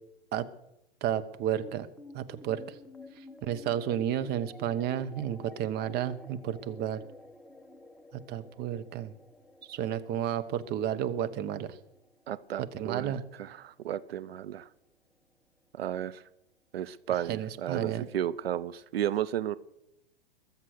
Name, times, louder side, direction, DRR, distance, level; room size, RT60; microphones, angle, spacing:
voice 1, 1.0-1.9 2.1-2.8 3.4-7.0 8.3-9.1 9.7-11.8 12.6-13.2 17.1-18.0, right 10 dB, 35° right, 12 dB, 1.0 m, -32 dB
sound 1, 1.6-14.2, left 1 dB, ahead, 1.2 m, -51 dB
voice 2, 12.3-14.7 15.7-16.2 16.7-19.6, right 11 dB, 75° right, 16 dB, 0.6 m, -33 dB
21.5 x 7.4 x 6.5 m, 0.85 s
hypercardioid pair, 110°, 30 cm